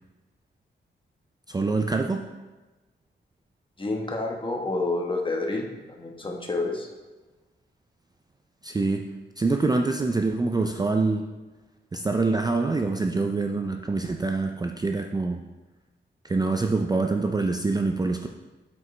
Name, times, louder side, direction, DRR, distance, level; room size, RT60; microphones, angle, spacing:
voice 1, 1.5-2.3 8.6-9.1 9.4-11.2 11.9-15.4 16.2-18.3, right 3 dB, 20° right, 4 dB, 0.4 m, -25 dB
voice 2, 3.8-6.9, left 2 dB, 25° left, 1 dB, 1.3 m, -29 dB
7.8 x 7.4 x 3.3 m, 1.2 s
cardioid pair, 95°, 20 cm